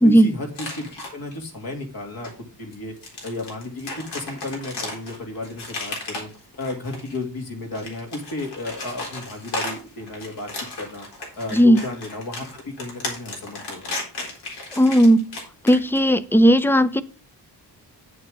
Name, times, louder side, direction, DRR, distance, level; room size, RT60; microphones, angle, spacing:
voice 1, 0.0-2.3 2.6-2.9 3.2-6.3 6.6-10.5 10.8-11.0 11.4-14.0, left 2 dB, 60° left, 2.5 m, -33 dB
sound 1, 0.5-1.3 2.2-2.3 2.7-7.2 7.6-16.1, left 2 dB, 75° left, 4.0 m, -34 dB
voice 2, 14.8-15.2 15.6-17.0, equal, 5° left, 0.4 m, -15 dB
9.4 x 7.8 x 3.6 m
wide cardioid pair, 150°, 40 cm